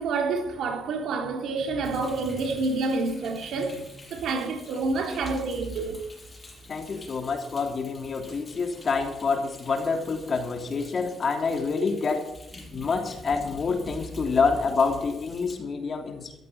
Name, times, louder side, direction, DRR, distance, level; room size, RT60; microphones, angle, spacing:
voice 1, 0.0-6.0, right 3 dB, 75° right, 3.6 m, -28 dB
Thunder, 1.8-15.6, left 2 dB, 25° left, 6.4 m, -48 dB
voice 2, 6.7-12.3 12.7-16.3, left 4 dB, 45° left, 3.1 m, -27 dB
13.5 x 13.5 x 5.9 m
cardioid pair, 90°, 0 cm